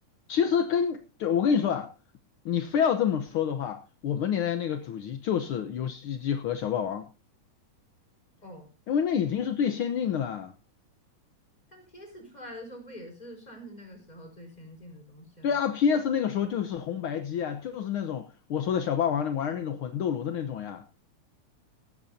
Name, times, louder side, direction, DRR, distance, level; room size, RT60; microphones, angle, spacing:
voice 1, 0.3-1.9 2.4-7.1 8.9-10.5 15.4-20.8, left 8 dB, 65° left, 1.4 m, -28 dB
voice 2, 11.7-15.5, equal, 15° left, 4.8 m, -45 dB
17.5 x 13.5 x 2.7 m
omnidirectional pair, 3.3 m